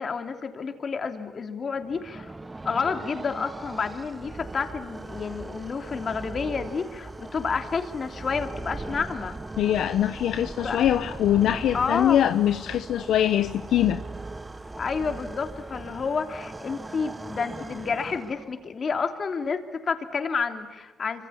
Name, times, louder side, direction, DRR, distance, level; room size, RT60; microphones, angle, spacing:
voice 1, 0.0-2.3 2.6-9.4 10.6-10.8 11.7-12.2 14.8-21.3, left 5 dB, 45° left, 6 dB, 3.0 m, -30 dB
sound 1, 1.8-18.7, right 2 dB, 15° right, 1.0 m, -39 dB
voice 2, 9.6-14.0, left 11 dB, 75° left, 10 dB, 0.9 m, -23 dB
27.0 x 25.5 x 8.7 m, 1.2 s
cardioid pair, 90°, 0 cm